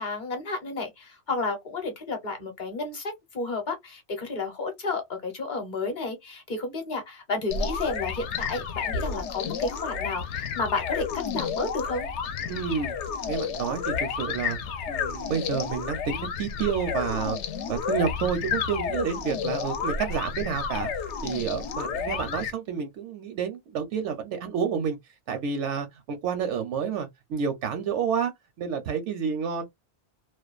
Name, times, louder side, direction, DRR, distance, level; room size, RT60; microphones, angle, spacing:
voice 1, 0.0-11.0 11.3-12.1, left 3 dB, 45° left, 0.9 m, -31 dB
sound 1, 7.5-22.5, left 6 dB, 85° left, 0.9 m, -31 dB
voice 2, 12.4-13.0 13.3-14.6 14.9-17.4 17.7-20.9 21.2-25.0 25.3-28.3 28.6-29.6, right 7 dB, 85° right, 0.9 m, -29 dB
2.5 x 2.2 x 2.3 m
omnidirectional pair, 1.2 m